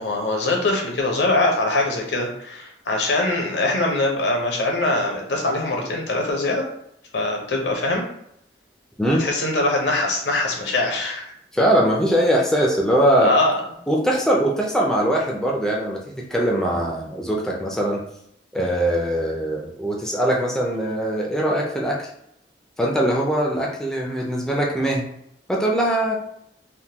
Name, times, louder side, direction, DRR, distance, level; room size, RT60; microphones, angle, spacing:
voice 1, 0.0-6.6 7.1-8.1 9.2-11.3 13.2-13.5, left 2 dB, 80° left, 1 dB, 0.8 m, -22 dB
voice 2, 11.5-13.3 13.9-18.0 18.5-22.1 22.8-25.1 25.5-26.2, right 1 dB, 5° left, -2 dB, 0.4 m, -21 dB
3.5 x 2.2 x 2.8 m, 0.74 s
head